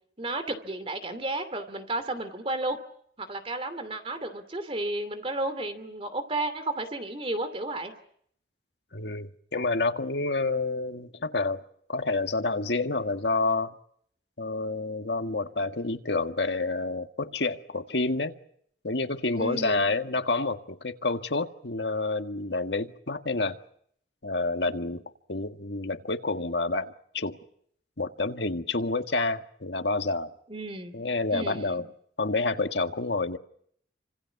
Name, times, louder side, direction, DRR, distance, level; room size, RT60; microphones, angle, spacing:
voice 1, 0.2-2.8 3.2-7.9 19.4-19.9 30.5-31.0 31.3-31.8, right 2 dB, 30° right, 2.8 m, -32 dB
voice 2, 8.9-11.6 11.9-13.7 14.4-18.3 18.8-23.6 24.2-25.0 25.3-27.4 28.0-30.3 30.9-31.8 32.2-33.4, left 3 dB, 75° left, 1.7 m, -28 dB
29.5 x 26.0 x 6.0 m
head